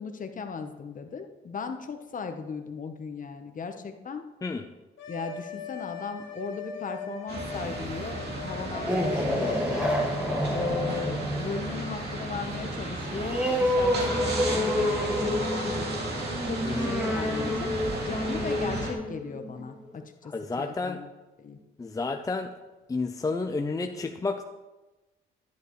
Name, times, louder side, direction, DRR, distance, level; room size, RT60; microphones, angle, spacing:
voice 1, 0.0-4.2 5.1-9.9 10.5-16.0 16.4-17.7 18.0-21.1 21.4-21.6, left 5 dB, 40° left, 6 dB, 1.0 m, -37 dB
sound 1, 5.0-9.4, left 4 dB, 80° left, 1.9 m, -40 dB
sound 2, 7.3-18.9, right 2 dB, 55° right, 2.5 m, -34 dB
sound 3, 8.6-19.8, left 1 dB, 5° right, 1.7 m, -29 dB
voice 2, 20.3-21.0 21.8-22.5 22.9-24.4, left 3 dB, 15° left, 5 dB, 0.5 m, -30 dB
10.5 x 10.5 x 3.2 m, 1.1 s
cardioid pair, 90°, 20 cm